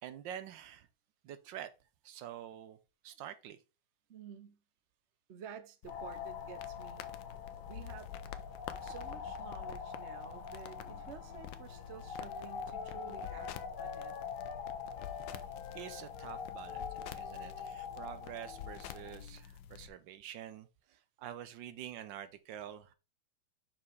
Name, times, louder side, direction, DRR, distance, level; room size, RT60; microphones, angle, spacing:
voice 1, 0.0-0.9 1.2-1.7 2.0-2.8 3.0-3.6 15.7-22.9, right 10 dB, 75° right, 1.4 m, -47 dB
voice 2, 4.1-4.6 5.3-7.1 7.6-8.1 8.8-14.1, right 8 dB, 50° right, 0.8 m, -51 dB
sound 1, 5.8-19.9, left 10 dB, 80° left, 1.4 m, -48 dB
sound 2, 5.9-19.2, left 6 dB, 50° left, 1.3 m, -44 dB
Wind instrument woodwind instrument, 10.6-14.7 15.0-19.4, left 8 dB, 65° left, 1.0 m, -53 dB
5.9 x 4.9 x 4.7 m
omnidirectional pair, 2.1 m